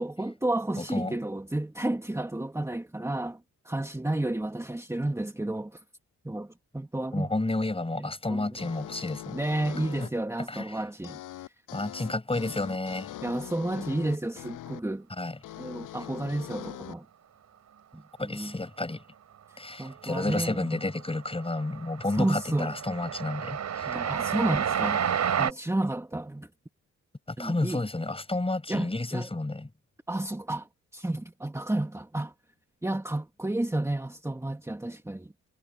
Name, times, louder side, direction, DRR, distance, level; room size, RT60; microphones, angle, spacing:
voice 1, 0.0-5.8 6.2-7.3 8.0-8.7 9.3-11.5 12.0-12.1 12.4-12.5 13.2-15.1 15.5-17.1 17.9-18.5 19.8-20.8 22.1-22.7 23.8-26.5 27.4-27.8 28.7-29.3 30.1-32.3 32.8-35.3, right 1 dB, 10° right, 2.1 m, -31 dB
voice 2, 0.8-1.1 7.1-9.4 10.0-10.1 10.5-10.8 11.7-13.2 15.2-15.4 18.2-19.0 19.6-24.0 27.3-29.7, left 2 dB, 20° left, 5.6 m, -31 dB
sound 1, 8.6-10.1 11.0-14.8 15.4-16.9, left 14 dB, 80° left, 7.7 m, -42 dB
Train, 19.8-20.3 20.6-25.5, right 8 dB, 60° right, 3.9 m, -30 dB
supercardioid pair, 60°, 31 cm